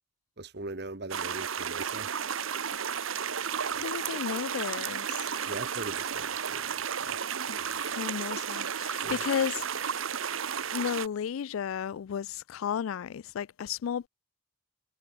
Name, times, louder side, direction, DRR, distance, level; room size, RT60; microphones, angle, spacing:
voice 1, 0.4-2.1 5.5-6.7 7.0-7.2 9.0-9.2, right 2 dB, 55° right, 1.3 m, -40 dB
sound 1, 1.1-11.1, right 7 dB, 90° right, 1.0 m, -33 dB
voice 2, 3.7-5.3 7.5-10.0 10.7-14.1, left 8 dB, 90° left, 0.4 m, -34 dB
head